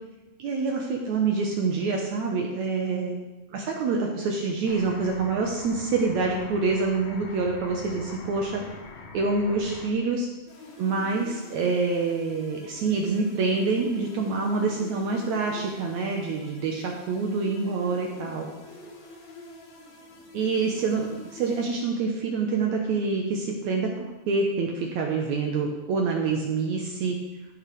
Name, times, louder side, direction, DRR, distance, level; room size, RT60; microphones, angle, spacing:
voice 1, 0.4-3.2 3.5-8.6 9.1-10.3 10.8-18.5 20.3-27.2, right 4 dB, 70° right, 0 dB, 2.2 m, -26 dB
sound 1, 4.7-9.9, left 4 dB, 85° left, 1.1 m, -44 dB
sound 2, 10.5-22.3, left 1 dB, 60° left, 2.7 m, -47 dB
16.5 x 7.2 x 3.3 m, 1.1 s
omnidirectional pair, 3.7 m